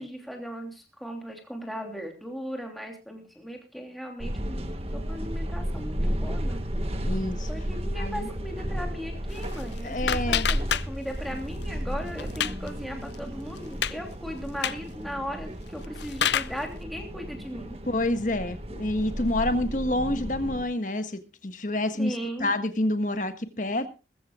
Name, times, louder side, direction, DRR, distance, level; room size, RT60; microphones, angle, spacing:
voice 1, 0.0-6.6 7.5-17.8 22.0-22.5, equal, ahead, 2 dB, 3.0 m, -37 dB
sound 1, 4.2-20.6, equal, 35° right, 1.7 m, -33 dB
voice 2, 7.0-7.5 8.0-8.3 9.8-10.5 17.9-23.9, left 1 dB, 45° left, 9 dB, 1.5 m, -28 dB
sound 2, 9.3-11.3 11.6-12.7 13.1-13.2 13.5-14.0 14.5-14.9 15.7-16.6, left 9 dB, 80° left, 0.6 m, -29 dB
20.5 x 15.0 x 2.4 m, 0.32 s
head